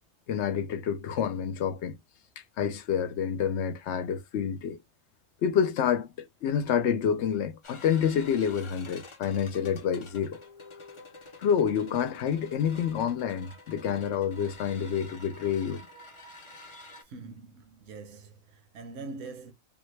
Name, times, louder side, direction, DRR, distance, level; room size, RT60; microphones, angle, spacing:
voice 1, 0.3-2.0 2.6-4.8 5.4-10.4 11.4-15.9 16.7-16.8, left 8 dB, 65° left, 0.8 m, -28 dB
sound 1, 7.6-17.0, left 2 dB, 35° left, 0.5 m, -49 dB
voice 2, 17.0-19.5, right 3 dB, 65° right, 1.1 m, -43 dB
3.6 x 2.1 x 3.2 m
omnidirectional pair, 1.4 m